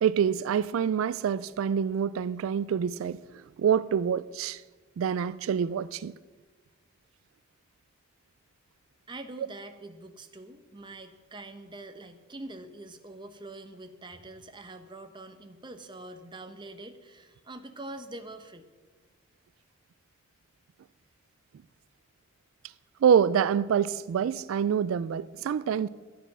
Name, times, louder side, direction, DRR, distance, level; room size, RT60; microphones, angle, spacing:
voice 1, 0.0-3.2 3.6-4.6 5.0-6.2 23.0-25.9, right 8 dB, 90° right, 0.3 m, -26 dB
voice 2, 9.1-18.7, right 2 dB, 25° right, 0.9 m, -44 dB
12.0 x 9.1 x 6.0 m
head